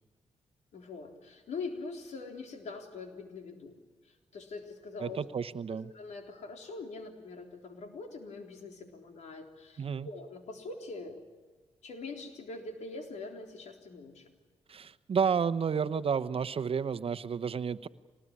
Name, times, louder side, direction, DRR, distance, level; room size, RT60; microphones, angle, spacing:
voice 1, 0.7-3.8 4.0-5.2 5.9-11.2 11.8-14.3, left 3 dB, 75° left, 4 dB, 3.8 m, -43 dB
voice 2, 5.0-5.9 9.8-10.1 14.7-17.9, right 6 dB, 55° right, 12 dB, 1.0 m, -31 dB
25.5 x 19.5 x 9.8 m, 1.3 s
cardioid pair, 60°, 12 cm